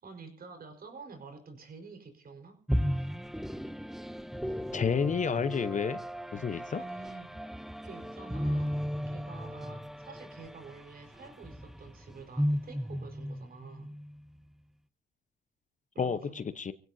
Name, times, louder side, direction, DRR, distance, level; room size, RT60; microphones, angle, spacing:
voice 1, 0.0-2.6 6.7-7.3 7.8-14.0 15.9-16.4, right 4 dB, 50° right, 5 dB, 4.7 m, -48 dB
sound 1, 2.7-14.3, equal, ahead, 0.7 m, -35 dB
voice 2, 4.7-6.0 6.3-6.8 16.0-16.7, left 6 dB, 40° left, 13 dB, 0.9 m, -30 dB
29.0 x 16.0 x 2.8 m, 0.40 s
cardioid pair, 90°, 20 cm